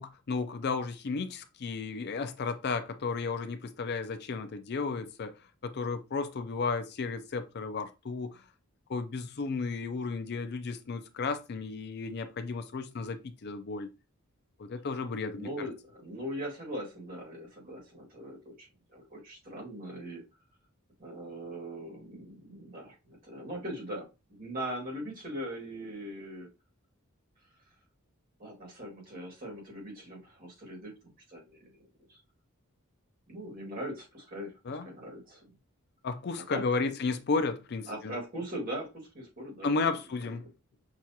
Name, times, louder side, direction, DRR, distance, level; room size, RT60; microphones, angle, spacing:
voice 1, 0.0-5.3 5.6-8.4 8.9-13.9 14.6-15.7 34.7-34.9 36.0-38.1 39.6-40.5, left 4 dB, 50° left, 0.5 m, -33 dB
voice 2, 15.3-20.2 21.0-26.5 28.4-30.9 31.3-32.2 33.3-35.4 36.5-36.9 37.9-40.0, equal, 40° right, 1.7 m, -40 dB
5.9 x 2.4 x 2.7 m
head